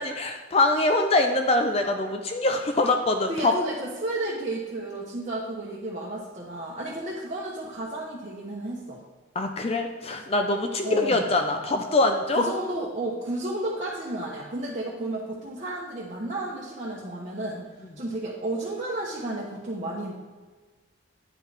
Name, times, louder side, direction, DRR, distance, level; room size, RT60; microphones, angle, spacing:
voice 1, 0.0-3.5 9.4-12.4, left 2 dB, 30° left, 5 dB, 0.5 m, -24 dB
voice 2, 3.3-9.0 10.8-11.3 12.4-20.1, right 1 dB, 35° right, -5 dB, 0.9 m, -32 dB
9.7 x 4.6 x 3.4 m, 1.4 s
head